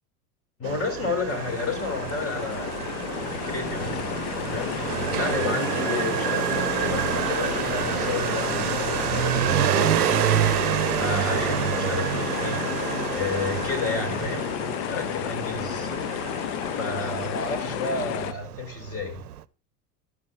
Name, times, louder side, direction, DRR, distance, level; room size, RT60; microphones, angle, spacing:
voice 1, 0.6-2.7 3.3-4.1 4.5-14.5 14.9-15.9 16.7-19.2, left 3 dB, 30° left, 4.1 m, -32 dB
Motorcycle, 0.6-19.4, right 12 dB, 65° right, 0.7 m, -28 dB
sound 1, 1.3-18.3, left 15 dB, 45° left, 0.7 m, -32 dB
12.0 x 8.3 x 5.1 m
figure-of-eight pair, 80°, 49 cm